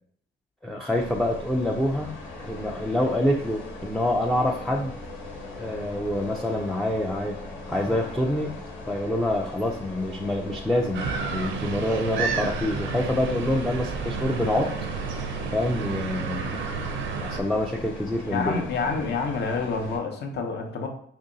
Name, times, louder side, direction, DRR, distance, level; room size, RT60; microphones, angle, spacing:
voice 1, 0.6-2.2 2.4-5.0 5.6-7.4 7.7-8.5 8.9-14.7 15.5-16.6 17.2-18.6, left 1 dB, ahead, 0 dB, 0.3 m, -26 dB
sound 1, 0.9-20.0, left 2 dB, 80° left, 1.1 m, -40 dB
sound 2, 10.9-17.4, right 5 dB, 75° right, 0.6 m, -31 dB
voice 2, 18.3-20.9, left 4 dB, 60° left, 4 dB, 0.7 m, -28 dB
3.0 x 2.7 x 3.8 m, 0.66 s
cardioid pair, 90°, 20 cm